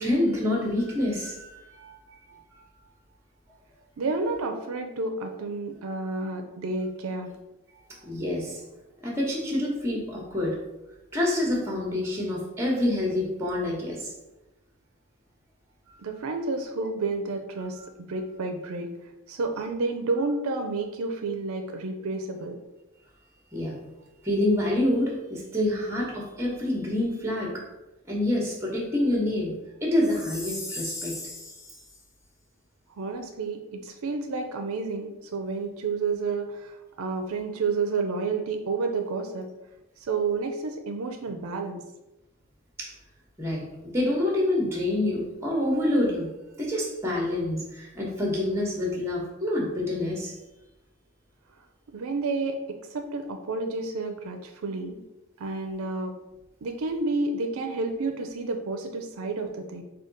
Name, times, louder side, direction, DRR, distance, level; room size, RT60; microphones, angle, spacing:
voice 1, 0.0-2.0 2.3-2.4 8.0-8.6 9.0-10.6 11.1-14.1 23.5-23.7 24.2-27.6 28.1-29.5 29.8-31.2 42.8-42.9 43.4-46.3 46.6-50.3, left 1 dB, 10° right, -1 dB, 0.9 m, -27 dB
voice 2, 4.0-7.3 16.0-18.9 19.3-22.6 33.0-39.5 40.0-41.8 51.9-55.0 55.4-56.1 56.6-59.8, right 3 dB, 70° right, 5 dB, 0.4 m, -30 dB
Chime, 30.0-32.0, left 2 dB, 15° left, 0.4 m, -38 dB
5.0 x 2.3 x 3.8 m, 0.99 s
head